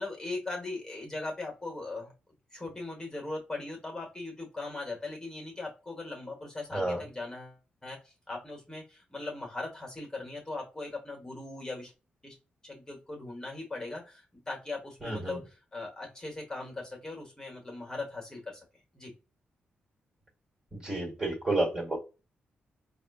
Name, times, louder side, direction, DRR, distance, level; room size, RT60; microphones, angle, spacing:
voice 1, 0.0-2.1 2.5-11.9 12.2-12.4 12.6-18.6 18.9-19.1, left 2 dB, 20° left, -1 dB, 1.2 m, -39 dB
voice 2, 6.7-7.0 15.0-15.4 20.7-22.0, right 2 dB, 20° right, -2 dB, 1.7 m, -30 dB
4.1 x 2.4 x 2.3 m, 0.30 s
cardioid pair, 85°, 4 cm